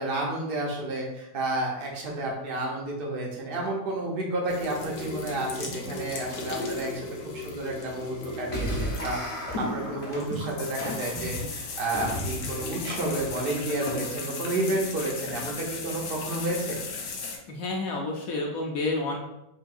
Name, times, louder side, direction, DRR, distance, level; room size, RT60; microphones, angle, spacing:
voice 1, 0.0-7.1 7.3-16.8, right 2 dB, 75° right, -1 dB, 0.5 m, -31 dB
sound 1, 4.5-17.4, left 4 dB, 90° left, 1.6 m, -37 dB
sound 2, 8.5-14.3, equal, 45° left, 0.4 m, -35 dB
voice 2, 17.5-19.2, left 2 dB, 65° left, -1 dB, 0.9 m, -29 dB
6.2 x 2.7 x 2.5 m, 0.87 s
omnidirectional pair, 2.1 m